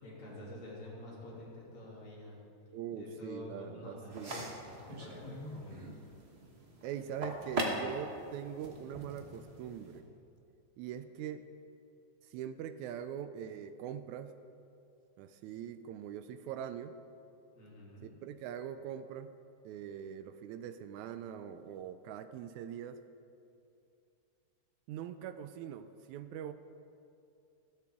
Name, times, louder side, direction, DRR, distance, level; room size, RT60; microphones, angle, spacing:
voice 1, 0.0-2.4 2.9-5.8 17.5-18.1, left 1 dB, 60° left, -6 dB, 4.2 m, -48 dB
voice 2, 2.7-4.3 6.8-10.0 10.8-11.4 12.3-14.3 15.2-16.9 18.0-19.3 19.7-23.0 24.9-26.5, right 9 dB, 80° right, 11 dB, 1.8 m, -42 dB
sound 1, 4.1-10.0, right 1 dB, 55° right, 0.6 m, -41 dB
15.5 x 13.5 x 3.6 m, 2.6 s
omnidirectional pair, 3.5 m